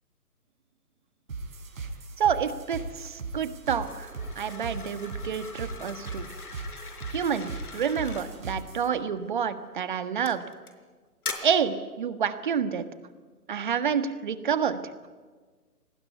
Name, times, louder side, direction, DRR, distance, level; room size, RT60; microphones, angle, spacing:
sound 1, 1.3-8.9, right 3 dB, 55° right, 5.0 m, -39 dB
voice 1, 2.2-6.3 7.1-10.4 11.4-12.8 13.5-14.8, right 7 dB, 30° right, 12 dB, 1.6 m, -28 dB
sound 2, 3.7-8.3 9.2-9.5 10.3-10.7 11.2-11.3, left 4 dB, 70° left, 4.6 m, -41 dB
26.5 x 20.0 x 9.4 m, 1.4 s
hypercardioid pair, 160°, 47 cm